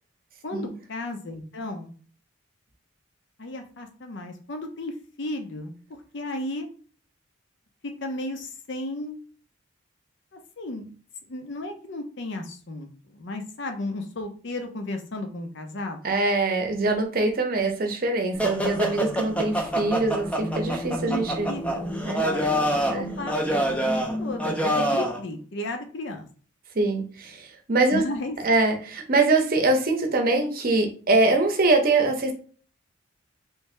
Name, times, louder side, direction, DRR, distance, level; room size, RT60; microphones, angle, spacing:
voice 1, 0.4-1.9 3.4-6.7 7.8-9.2 10.3-10.9 11.3-16.0 21.1-21.9 22.2-26.3 27.9-28.4, left 2 dB, 60° left, 5 dB, 0.6 m, -34 dB
voice 2, 16.0-21.6 22.0-22.3 22.9-23.1 26.7-28.0 28.4-32.3, right 3 dB, 45° right, 3 dB, 0.7 m, -23 dB
sound 1, 18.4-25.2, equal, 5° left, 0.4 m, -26 dB
3.2 x 2.7 x 3.2 m, 0.41 s
head